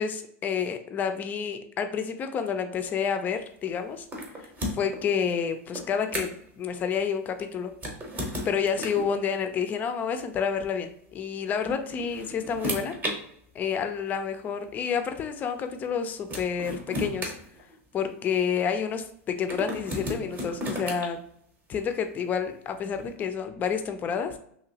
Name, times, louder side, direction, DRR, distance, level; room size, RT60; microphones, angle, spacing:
voice 1, 0.0-4.1 4.7-7.7 8.4-12.9 13.5-17.3 17.9-21.2 21.7-24.3, left 7 dB, 20° left, 8 dB, 0.3 m, -29 dB
sound 1, 4.1-5.0 5.7-6.5 7.7-9.1 10.4-10.6 11.7-13.2 14.1-14.2 15.8-15.9 16.3-18.1 19.5-21.1, equal, 20° right, 0.7 m, -34 dB
2.9 x 2.7 x 2.7 m, 0.68 s
supercardioid pair, 140°, 8 cm